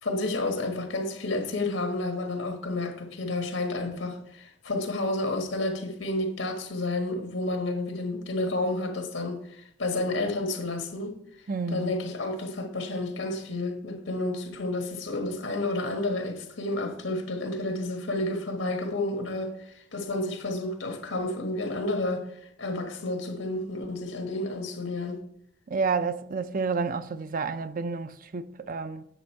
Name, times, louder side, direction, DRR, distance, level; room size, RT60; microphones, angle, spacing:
voice 1, 0.0-11.2 11.7-19.6 19.9-22.3 22.6-25.2, left 2 dB, 90° left, 1.5 m, -30 dB
voice 2, 11.5-11.9 25.7-29.1, right 4 dB, 45° right, 0.5 m, -30 dB
9.1 x 7.1 x 4.6 m
head